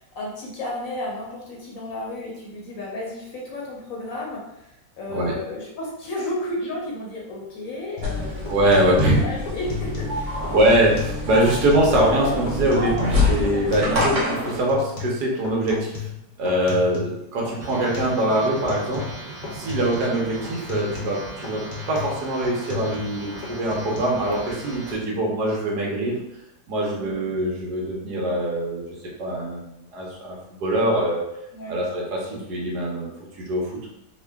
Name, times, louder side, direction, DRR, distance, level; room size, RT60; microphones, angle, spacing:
voice 1, 0.0-10.5 16.6-16.8 26.9-27.2 31.5-31.8, left 1 dB, 60° left, -3 dB, 1.1 m, -33 dB
sound 1, 8.0-8.2 8.5-10.2 10.4-11.2 11.5-12.2 12.5-14.2 14.5-17.2 17.4-18.2 18.5-19.2 19.4-20.1 20.4-23.2 23.4-24.0, left 8 dB, 85° left, 1.4 m, -34 dB
sound 2, 8.0-14.6, left 2 dB, 50° right, 1.3 m, -26 dB
voice 2, 8.5-9.2 10.5-16.0 16.4-19.0 19.5-26.2 26.7-28.8 29.2-31.2 31.7-33.1 33.5-33.9, right 1 dB, 75° right, -2 dB, 1.4 m, -23 dB
sound 3, 17.6-24.9, right 2 dB, 35° right, 1.0 m, -38 dB
3.6 x 2.2 x 3.4 m, 0.84 s
omnidirectional pair, 1.8 m